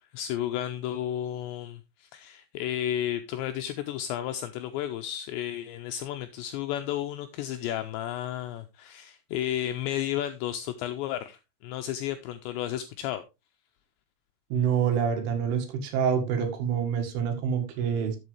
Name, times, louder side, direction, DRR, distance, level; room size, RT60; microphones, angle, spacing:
voice 1, 0.1-13.2, left 11 dB, 85° left, 2.5 m, -32 dB
voice 2, 14.5-18.2, right 7 dB, 75° right, 4.2 m, -27 dB
12.5 x 7.7 x 3.2 m
omnidirectional pair, 5.8 m